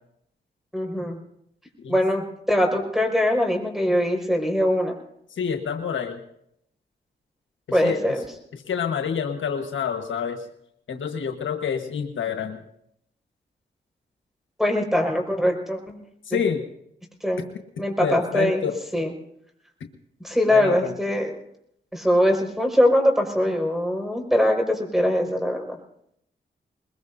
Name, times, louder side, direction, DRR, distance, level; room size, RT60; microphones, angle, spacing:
voice 1, 0.7-1.2 1.9-4.9 7.7-8.2 14.6-16.0 16.3-16.4 17.2-17.5 17.8-18.6 18.9-19.1 20.2-21.3 21.9-25.8, left 1 dB, ahead, 2 dB, 5.3 m, -22 dB
voice 2, 5.4-6.2 7.8-8.1 8.7-10.4 10.9-12.6 16.3-16.6 18.0-18.8 20.5-20.9, left 7 dB, 80° left, 5 dB, 1.4 m, -27 dB
21.5 x 21.0 x 2.7 m, 0.73 s
cardioid pair, 45°, 20 cm